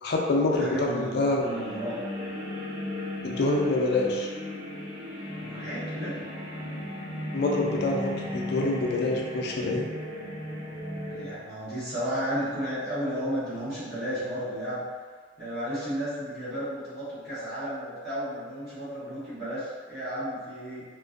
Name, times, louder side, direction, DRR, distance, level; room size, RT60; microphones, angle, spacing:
voice 1, 0.0-1.4 3.2-4.3 7.3-9.9, left 2 dB, 60° left, -1 dB, 0.4 m, -26 dB
voice 2, 0.5-1.9 5.4-6.1 11.1-14.8 15.4-20.8, equal, 60° right, -13 dB, 1.1 m, -33 dB
sound 1, 1.4-11.3, left 1 dB, 35° right, 1.1 m, -36 dB
2.5 x 2.2 x 2.4 m, 1.5 s
head